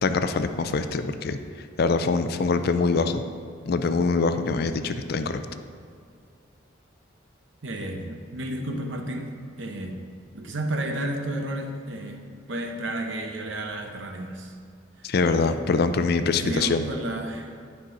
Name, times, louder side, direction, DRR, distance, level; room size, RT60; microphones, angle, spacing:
voice 1, 0.0-1.4 1.8-3.2 3.7-5.4 15.0-16.8, left 4 dB, 50° left, 9 dB, 0.4 m, -24 dB
voice 2, 7.6-9.3 9.6-10.0 10.3-12.2 12.5-14.5 15.2-15.5 16.4-17.5, right 1 dB, 65° right, 3 dB, 0.8 m, -32 dB
10.5 x 5.5 x 3.8 m, 2.3 s
head